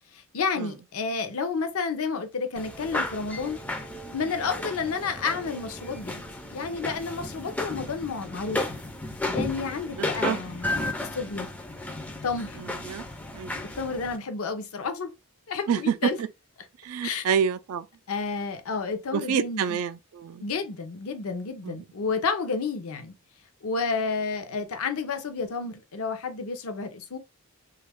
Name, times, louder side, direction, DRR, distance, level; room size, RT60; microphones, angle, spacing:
voice 1, 0.1-3.6 4.1-6.2 6.5-8.8 9.3-10.7 11.1-11.5 12.2-12.6 13.8-15.1 15.5-16.2 17.0-17.2 18.1-19.8 20.4-23.1 23.6-27.2, left 4 dB, 75° left, 0.6 m, -30 dB
sound 1, 2.6-14.2, left 2 dB, 5° left, 0.3 m, -34 dB
voice 2, 10.0-10.4 12.6-13.0 13.3-13.6 15.7-16.3 16.8-17.9 19.1-20.4 21.7-21.8, right 7 dB, 75° right, 0.3 m, -28 dB
3.0 x 2.4 x 3.3 m
head